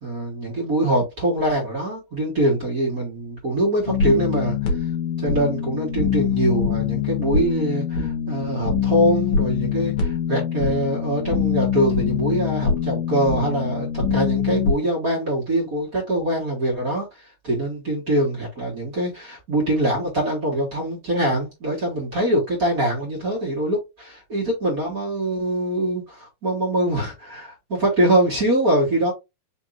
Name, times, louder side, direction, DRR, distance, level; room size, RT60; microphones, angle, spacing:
voice 1, 0.0-4.7 5.2-17.1 17.4-29.1, right 1 dB, 30° right, 1.9 m, -23 dB
sound 1, 3.9-14.7, left 7 dB, 60° left, 2.2 m, -24 dB
5.6 x 3.5 x 2.6 m
omnidirectional pair, 4.4 m